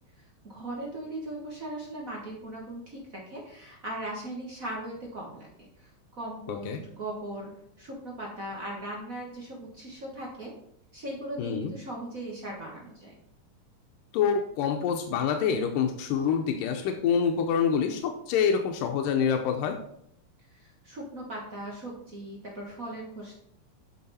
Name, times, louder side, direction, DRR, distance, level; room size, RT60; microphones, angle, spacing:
voice 1, 0.4-5.5 5.8-7.5 7.8-10.5 10.9-13.2 20.5-23.3, right 1 dB, 50° right, -2 dB, 1.0 m, -38 dB
voice 2, 6.5-6.8 11.4-11.7 14.1-19.8, left 7 dB, 90° left, 4 dB, 2.3 m, -26 dB
8.6 x 6.1 x 4.2 m, 0.70 s
omnidirectional pair, 3.7 m